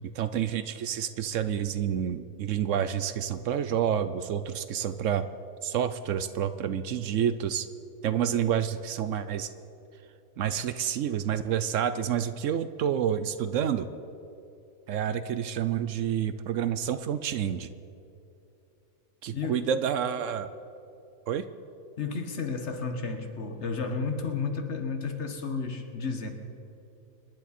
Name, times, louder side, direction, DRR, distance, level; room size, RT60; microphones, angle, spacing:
voice 1, 0.0-5.3 5.6-7.7 8.0-9.5 10.4-13.9 14.9-17.7 19.2-20.5 21.3-21.5, right 9 dB, 70° right, 12 dB, 0.9 m, -29 dB
voice 2, 19.3-19.6 22.0-26.3, left 4 dB, 55° left, 6 dB, 1.5 m, -32 dB
25.5 x 11.0 x 4.3 m, 2.8 s
omnidirectional pair, 1.4 m